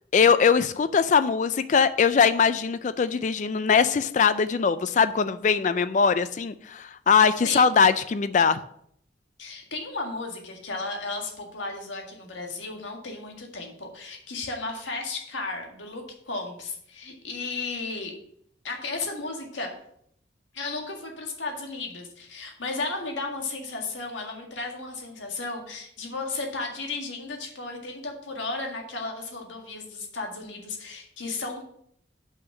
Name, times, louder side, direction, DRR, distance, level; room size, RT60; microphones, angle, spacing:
voice 1, 0.1-8.6, left 6 dB, 40° left, 13 dB, 0.3 m, -21 dB
voice 2, 7.4-7.8 9.4-18.1 18.6-19.7 20.5-31.7, left 3 dB, 90° left, 2 dB, 1.9 m, -34 dB
5.8 x 5.7 x 6.2 m, 0.68 s
head